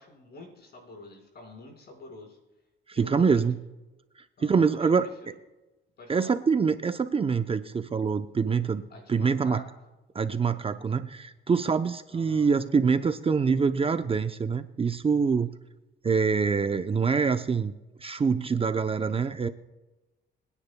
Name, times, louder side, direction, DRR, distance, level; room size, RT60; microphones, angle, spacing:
voice 1, 0.0-2.4 2.9-3.4 4.4-5.4 6.0-6.3 8.9-9.7 12.1-12.5, left 2 dB, 55° left, 1 dB, 4.8 m, -47 dB
voice 2, 2.9-3.6 4.4-5.1 6.1-8.8 9.1-9.6 10.1-15.5 16.0-17.7 18.0-19.5, right 5 dB, 30° right, 9 dB, 0.6 m, -25 dB
25.0 x 9.9 x 2.2 m, 1.1 s
cardioid pair, 90°, 20 cm